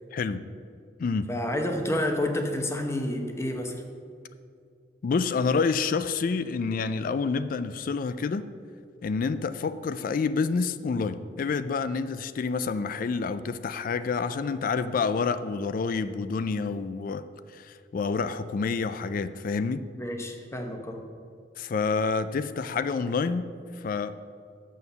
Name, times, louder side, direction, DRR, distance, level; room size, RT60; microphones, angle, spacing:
voice 1, 0.1-0.4 1.0-1.3 5.0-8.5 9.0-17.3 17.5-19.8 21.6-23.5 23.8-24.1, left 4 dB, 50° left, 13 dB, 0.3 m, -28 dB
voice 2, 1.3-3.8 19.9-21.0, left 1 dB, 15° left, 4 dB, 0.9 m, -29 dB
7.1 x 6.4 x 6.7 m, 2.3 s
head